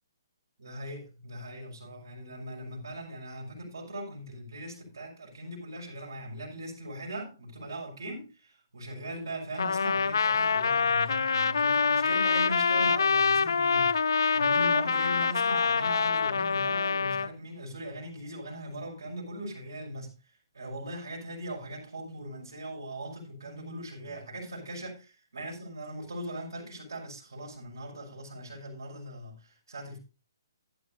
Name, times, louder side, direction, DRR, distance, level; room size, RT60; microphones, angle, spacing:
voice 1, 0.6-13.9 14.3-20.1 20.5-24.9 25.3-30.0, right 1 dB, 75° right, 5.9 m, -40 dB
Trumpet, 9.6-17.3, left 5 dB, 70° left, 0.5 m, -25 dB
15.0 x 11.0 x 2.7 m
figure-of-eight pair, 130°, 2 cm